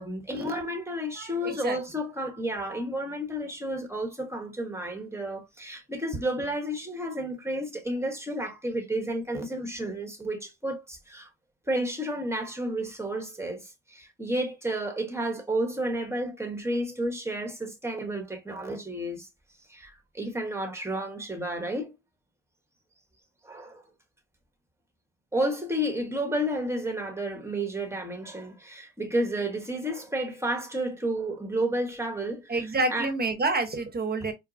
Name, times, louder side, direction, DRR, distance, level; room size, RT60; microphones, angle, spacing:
voice 1, 0.0-11.3 11.7-19.3 19.7-21.9 23.4-23.8 25.3-32.5 32.9-33.1 34.2-34.3, right 1 dB, 10° right, 1.2 m, -31 dB
voice 2, 1.2-1.8 32.5-34.3, right 3 dB, 30° right, 1.1 m, -28 dB
4.5 x 2.1 x 2.6 m
supercardioid pair, 70°, 34 cm